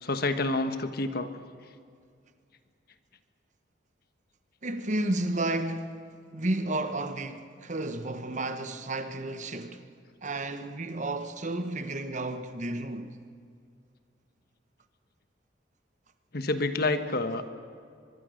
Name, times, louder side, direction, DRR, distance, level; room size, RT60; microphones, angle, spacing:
voice 1, 0.0-1.3 16.3-17.4, left 2 dB, 55° left, 1.3 m, -28 dB
voice 2, 4.6-9.8 10.2-13.1, right 2 dB, 40° right, 1.2 m, -32 dB
24.0 x 22.0 x 6.5 m
head